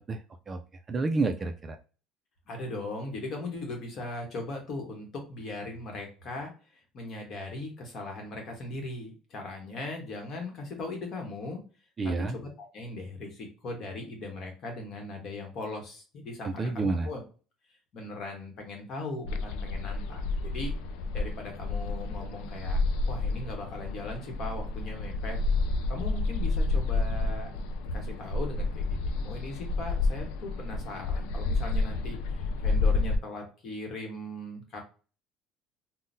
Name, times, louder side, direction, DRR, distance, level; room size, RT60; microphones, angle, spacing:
voice 1, 0.1-0.6 0.9-1.8 12.0-12.4 16.4-17.1, right 3 dB, 25° right, 6 dB, 0.3 m, -29 dB
voice 2, 2.5-11.6 12.2-17.2 17.9-20.7 21.1-22.8 23.0-25.4 25.9-27.6 27.9-34.8, left 2 dB, 45° left, 2 dB, 1.1 m, -39 dB
sound 1, 19.2-33.1, left 3 dB, 85° left, 0.3 m, -30 dB
3.7 x 2.1 x 2.6 m, 0.35 s
cardioid pair, 140°, 0 cm